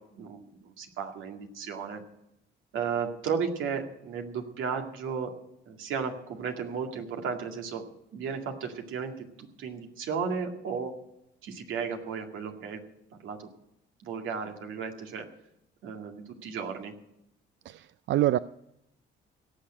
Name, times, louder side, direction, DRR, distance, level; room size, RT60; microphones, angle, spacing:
voice 1, 0.2-2.0 2.7-5.3 5.7-7.8 8.1-11.0 11.4-12.8 13.2-13.5 14.0-15.3 15.8-16.9, right 6 dB, 85° right, 3 dB, 2.2 m, -34 dB
voice 2, 17.7-18.4, right 14 dB, 70° right, 16 dB, 0.4 m, -26 dB
17.5 x 6.6 x 8.9 m, 0.82 s
cardioid pair, 90°, 20 cm